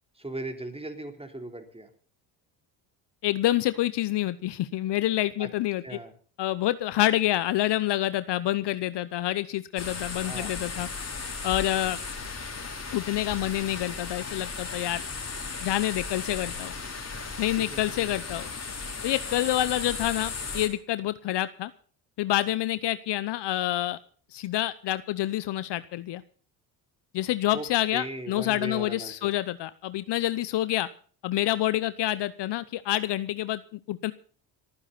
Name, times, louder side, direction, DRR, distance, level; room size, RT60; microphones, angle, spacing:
voice 1, 0.2-1.9 5.4-5.5 5.8-6.1 10.2-10.5 17.7-18.1 27.5-27.7 27.9-29.3, right 2 dB, 10° right, 6 dB, 3.5 m, -38 dB
voice 2, 3.2-6.0 6.4-10.9 11.4-12.0 12.9-15.0 15.6-16.7 17.4-18.5 19.0-21.7 22.2-24.0 24.3-26.2 27.1-30.9 31.2-34.1, left 14 dB, 55° left, 15 dB, 0.9 m, -27 dB
sound 1, 9.8-20.7, left 4 dB, 30° left, 4.2 m, -36 dB
27.5 x 9.9 x 4.1 m, 0.43 s
supercardioid pair, 70°, 48 cm